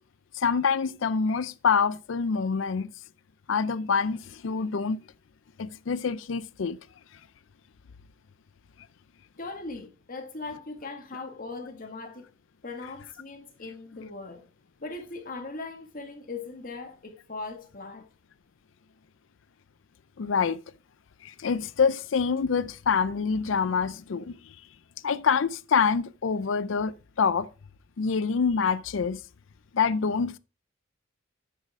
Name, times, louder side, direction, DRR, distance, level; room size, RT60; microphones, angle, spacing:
voice 1, 0.3-2.9 3.5-5.0 5.6-6.8 20.2-20.6 21.2-24.5 25.0-27.5 28.0-29.2 29.7-30.4, left 5 dB, 65° left, 0.5 m, -26 dB
voice 2, 9.4-12.3 12.6-14.4 14.8-18.1, left 3 dB, 45° left, 2.1 m, -39 dB
10.0 x 8.1 x 3.6 m
head